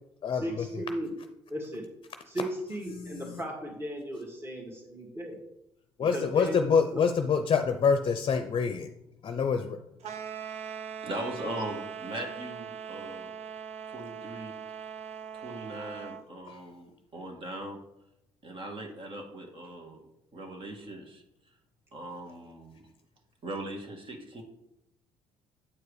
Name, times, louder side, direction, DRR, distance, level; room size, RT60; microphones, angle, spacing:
voice 1, 0.3-1.1 1.5-1.9 2.3-5.4 6.1-7.1, equal, 20° right, 0 dB, 2.0 m, -36 dB
voice 2, 6.0-8.9 9.2-9.7, left 6 dB, 45° left, 8 dB, 0.6 m, -26 dB
sound 1, 10.0-16.3, right 8 dB, 65° right, 0.7 m, -40 dB
voice 3, 11.0-13.3 13.9-14.5 15.3-17.8 18.4-20.0 20.3-21.2 21.9-22.8 23.4-24.4, right 1 dB, 50° right, 2 dB, 2.0 m, -39 dB
8.6 x 4.7 x 4.9 m, 0.84 s
supercardioid pair, 70°, 12 cm